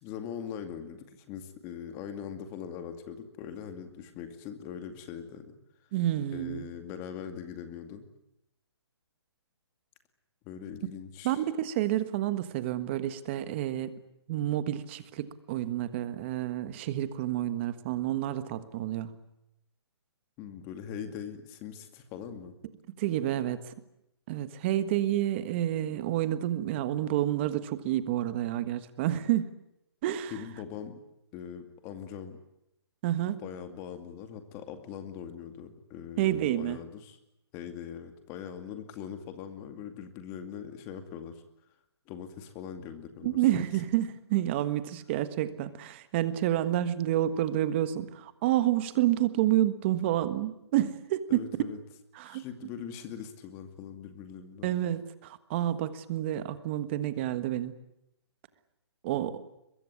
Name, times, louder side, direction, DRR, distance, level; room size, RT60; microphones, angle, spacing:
voice 1, 0.0-5.5 6.3-8.1 10.4-11.4 20.4-22.5 30.3-31.0 31.3-32.4 33.4-37.2 37.5-41.4 42.1-43.6 51.3-51.8 52.2-54.7, left 8 dB, 20° left, 8 dB, 2.4 m, -41 dB
voice 2, 5.9-6.7 11.2-14.0 14.3-19.1 23.0-23.7 24.3-29.5 30.0-30.3 33.0-33.4 36.2-36.8 43.2-51.5 52.1-52.4 54.6-57.8 59.0-59.4, right 13 dB, 25° right, 13 dB, 1.5 m, -29 dB
23.5 x 22.0 x 9.8 m, 0.83 s
hypercardioid pair, 165°, 14 cm